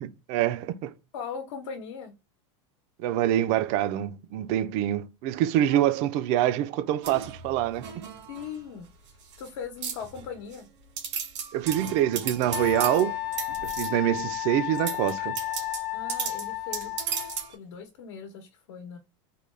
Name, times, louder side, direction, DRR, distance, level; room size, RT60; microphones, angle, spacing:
voice 1, 0.0-0.9 3.0-7.9 11.5-13.2 13.6-15.4, right 12 dB, 45° right, 0.4 m, -25 dB
voice 2, 1.1-2.1 5.7-5.8 8.3-10.7 15.9-16.9 17.2-19.0, left 6 dB, 75° left, 0.9 m, -39 dB
sound 1, 7.0-8.6 9.1-9.5 9.8-10.6 11.0-14.2 14.7-17.5, right 7 dB, 90° right, 1.9 m, -36 dB
Wind instrument woodwind instrument, 12.5-17.5, left 17 dB, 50° left, 0.5 m, -33 dB
3.7 x 2.2 x 3.2 m
supercardioid pair, 155°, 15 cm